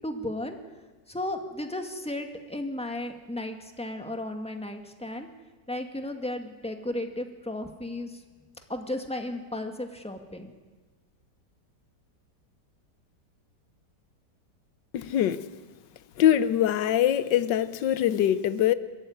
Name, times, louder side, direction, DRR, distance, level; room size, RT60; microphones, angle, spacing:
voice 1, 0.0-0.6 1.1-5.3 5.7-8.2 8.7-10.5, left 1 dB, 5° left, 2.0 m, -34 dB
voice 2, 14.9-15.4 16.2-18.7, left 11 dB, 90° left, 1.5 m, -23 dB
25.5 x 14.0 x 9.7 m
omnidirectional pair, 1.9 m